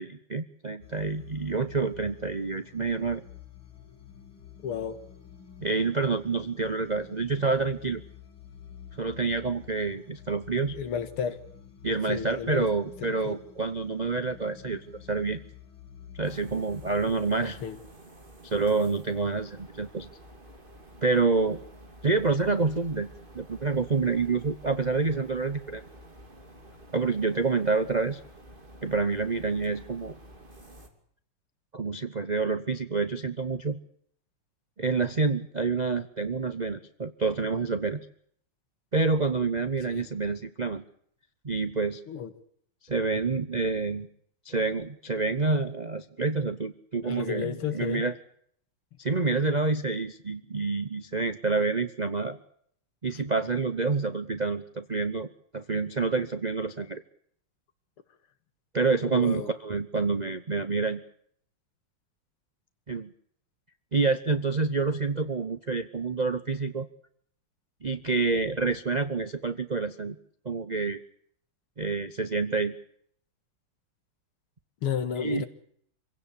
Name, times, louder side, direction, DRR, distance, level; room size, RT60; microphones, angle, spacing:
voice 1, 0.0-3.2 5.6-8.0 9.0-10.8 11.8-15.4 16.2-17.6 18.4-20.1 21.0-21.6 22.0-23.1 23.3-25.8 26.9-28.2 28.8-30.1 31.7-33.8 34.8-38.0 38.9-40.8 41.4-42.0 42.8-44.1 44.4-48.1 49.0-52.4 53.0-57.0 58.7-61.0 62.9-63.1 63.9-66.9 67.8-70.2 70.4-71.0 71.8-72.7 75.2-75.4, right 4 dB, 60° right, 0.4 m, -28 dB
sound 1, 0.8-17.7, left 9 dB, 65° left, 3.6 m, -49 dB
voice 2, 4.6-5.0 10.7-11.4 12.1-12.7 13.0-13.4 17.4-17.8 39.9-40.1 42.1-42.3 47.0-48.0 59.1-59.5 74.8-75.5, left 8 dB, 85° left, 2.5 m, -32 dB
sound 2, 16.2-30.9, right 1 dB, 25° right, 2.9 m, -50 dB
26.0 x 17.0 x 8.5 m
omnidirectional pair, 2.4 m